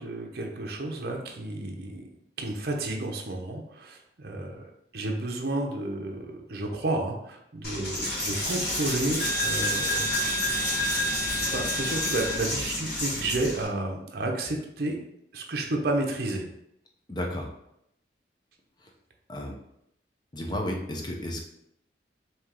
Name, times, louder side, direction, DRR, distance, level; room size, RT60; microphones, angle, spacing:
voice 1, 0.0-2.1 2.4-4.6 4.9-10.1 11.4-15.0 15.3-16.5, right 2 dB, 55° right, 1 dB, 0.6 m, -31 dB
Coin (dropping), 7.6-13.6, left 1 dB, 55° left, 1.6 m, -28 dB
voice 2, 17.1-17.5 19.3-19.5 20.3-21.4, left 1 dB, 25° left, 1 dB, 0.6 m, -32 dB
4.4 x 2.8 x 3.7 m, 0.79 s
head